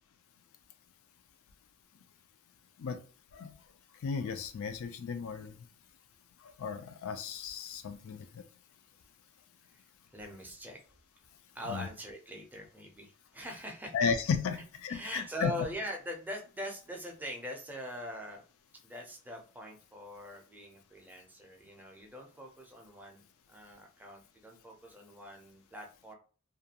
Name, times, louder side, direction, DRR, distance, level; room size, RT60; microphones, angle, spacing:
voice 1, 4.0-5.5 6.6-8.4 11.7-11.9 13.9-15.5, left 6 dB, 70° left, 8 dB, 0.4 m, -34 dB
voice 2, 10.1-10.8 11.5-14.1 14.5-14.6 14.9-18.4 18.8-26.1, left 1 dB, 10° right, 0 dB, 0.5 m, -43 dB
2.4 x 2.2 x 2.7 m, 0.39 s
head